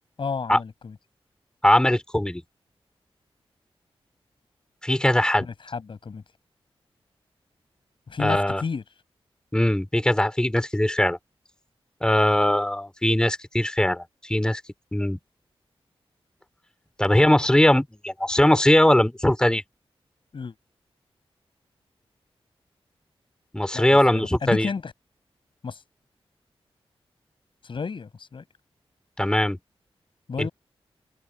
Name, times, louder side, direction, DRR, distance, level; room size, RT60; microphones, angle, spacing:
voice 1, 0.2-1.0 5.4-6.2 8.1-8.8 20.3-20.5 23.7-24.9 25.6-25.8 27.6-28.4 30.3-30.5, left 5 dB, 55° left, 7.9 m, -32 dB
voice 2, 1.6-2.4 4.8-5.5 8.2-8.6 9.5-11.2 12.0-14.6 14.9-15.2 17.0-19.6 23.5-24.7 29.2-29.6 30.4-30.5, left 1 dB, 10° left, 3.0 m, -20 dB
open air
wide cardioid pair, 130°, 10 cm